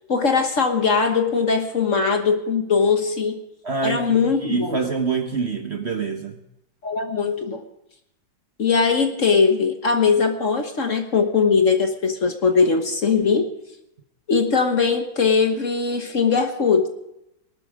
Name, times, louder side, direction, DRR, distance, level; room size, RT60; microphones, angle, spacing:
voice 1, 0.1-3.4 3.8-4.8 6.8-7.6 8.6-13.5 14.3-16.9, left 5 dB, 45° left, 7 dB, 1.4 m, -20 dB
voice 2, 3.6-6.4, right 4 dB, 40° right, 6 dB, 1.2 m, -26 dB
19.0 x 12.5 x 5.0 m, 0.83 s
omnidirectional pair, 2.0 m